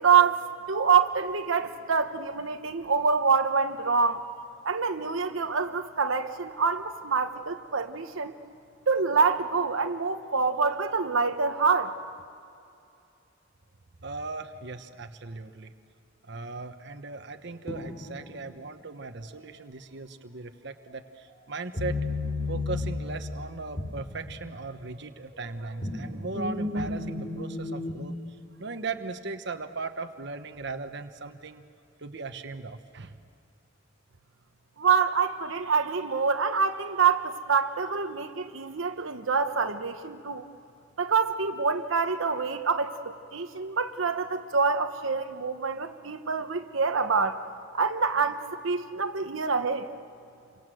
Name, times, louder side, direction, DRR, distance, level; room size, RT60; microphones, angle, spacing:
voice 1, 0.0-4.3 4.6-8.3 8.9-11.9 34.8-40.4 41.0-47.4 47.7-49.9, right 5 dB, 90° right, 6 dB, 1.1 m, -26 dB
voice 2, 14.0-15.7 16.2-22.0 22.5-28.1 28.6-31.6 32.0-33.2, right 3 dB, 60° right, 7 dB, 1.2 m, -38 dB
sound 1, 17.7-18.3 21.7-24.9 25.3-28.0, left 2 dB, 35° left, 3.1 m, -33 dB
28.5 x 25.0 x 7.8 m, 2.7 s
head